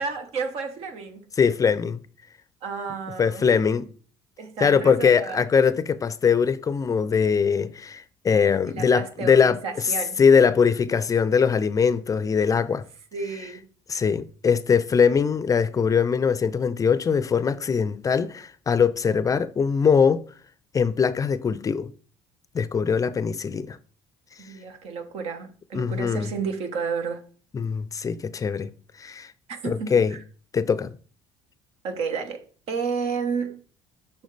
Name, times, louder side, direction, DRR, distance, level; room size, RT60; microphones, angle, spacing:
voice 1, 0.0-1.2 2.6-3.5 4.4-5.4 8.6-10.2 13.1-13.6 24.4-27.2 29.5-30.2 31.8-33.6, right 5 dB, 65° right, 1.2 m, -31 dB
voice 2, 1.4-2.0 3.2-3.9 4.6-9.9 10.2-12.8 13.9-20.2 20.7-21.9 22.5-23.8 25.7-26.3 27.5-28.7 29.0-29.3 29.6-30.2 30.5-31.0, left 6 dB, 30° left, 0.5 m, -21 dB
6.2 x 5.7 x 3.3 m
hypercardioid pair, 70°, 11 cm